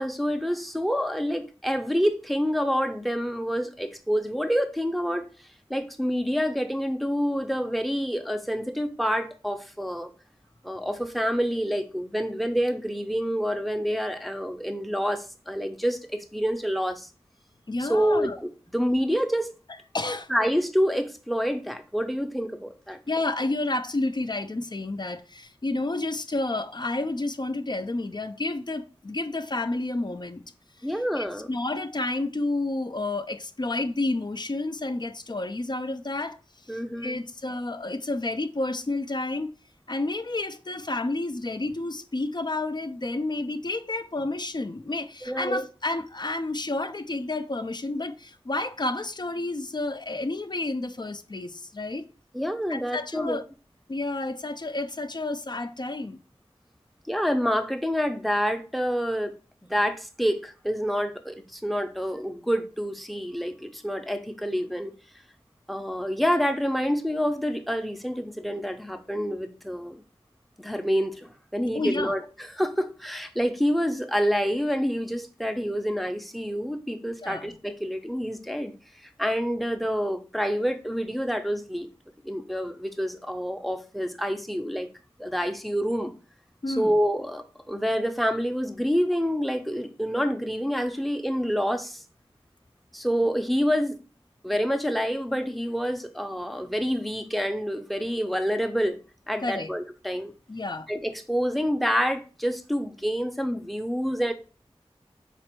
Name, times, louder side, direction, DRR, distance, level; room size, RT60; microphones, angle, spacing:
voice 1, 0.0-5.3 5.7-10.1 10.6-17.1 17.8-19.5 20.3-23.0 30.8-31.5 36.7-37.2 45.2-45.6 52.3-53.4 57.1-59.3 59.7-64.9 65.7-70.0 70.6-72.2 72.5-78.7 79.2-81.9 82.2-84.9 85.2-86.1 86.7-92.0 92.9-94.0 94.4-99.0 99.3-100.3 100.9-104.3, equal, ahead, 0.6 m, -27 dB
voice 2, 17.7-18.4 19.9-20.3 23.1-30.4 31.2-36.4 36.7-39.5 39.9-52.1 52.7-53.4 53.9-56.2 71.7-72.1 77.2-77.6 86.6-87.0 99.4-99.7 100.5-100.9, left 2 dB, 45° left, 0.4 m, -30 dB
4.3 x 2.5 x 4.4 m
wide cardioid pair, 45°, 11 cm